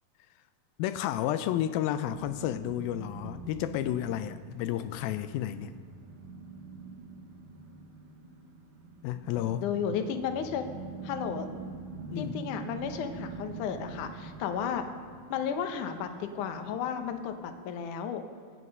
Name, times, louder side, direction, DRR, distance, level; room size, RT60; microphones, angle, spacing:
voice 1, 0.8-5.7 9.0-9.7 12.1-12.4, left 12 dB, 85° left, 2.4 m, -31 dB
sound 1, 2.0-17.5, right 4 dB, 55° right, 1.6 m, -45 dB
voice 2, 9.6-10.7 11.0-11.5 12.2-14.8 15.3-18.2, left 7 dB, 70° left, 2.3 m, -33 dB
25.0 x 8.4 x 5.4 m
omnidirectional pair, 4.2 m